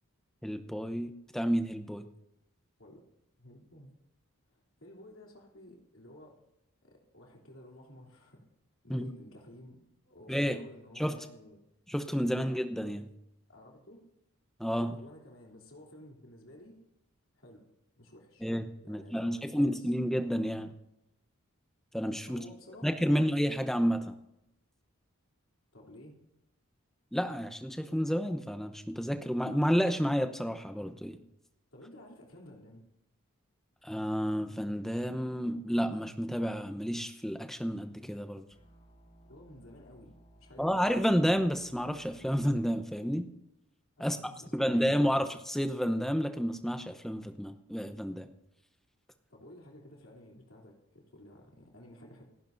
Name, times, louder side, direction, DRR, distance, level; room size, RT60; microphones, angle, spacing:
voice 1, 0.4-2.1 8.9-9.0 10.3-10.7 11.0-11.2 11.9-13.1 14.6-15.0 18.4-20.7 21.9-22.4 22.8-24.1 27.1-31.2 33.8-38.4 40.6-43.3 44.0-44.2 44.5-48.3, equal, ahead, 7 dB, 0.8 m, -30 dB
voice 2, 3.4-3.9 4.5-6.4 6.8-8.4 8.8-11.6 13.5-14.0 14.7-16.8 17.4-17.6 17.9-18.5 18.8-19.7 22.3-23.3 25.7-26.2 31.7-32.9 39.2-41.0 44.0-45.3 49.3-52.2, left 1 dB, 70° left, -1 dB, 3.2 m, -53 dB
sound 1, 38.5-42.6, right 1 dB, 40° left, 6.6 m, -59 dB
28.5 x 10.5 x 2.7 m, 0.86 s
head